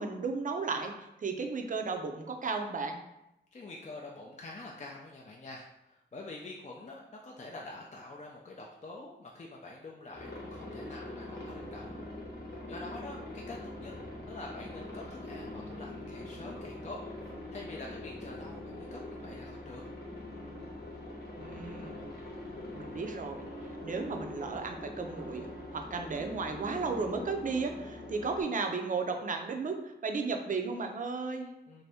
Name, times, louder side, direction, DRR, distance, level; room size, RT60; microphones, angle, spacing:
voice 1, 0.0-3.0 21.4-22.0 22.7-23.5 23.8-31.5, right 4 dB, 45° right, 4 dB, 0.4 m, -34 dB
voice 2, 3.5-12.0 12.7-13.9 14.3-17.0 17.5-19.8 31.7-31.8, left 2 dB, 35° left, -1 dB, 0.4 m, -46 dB
Aircraft, 10.1-28.4, left 1 dB, 60° left, 0.9 m, -43 dB
2.7 x 2.6 x 3.3 m, 0.88 s
cardioid pair, 60°, 19 cm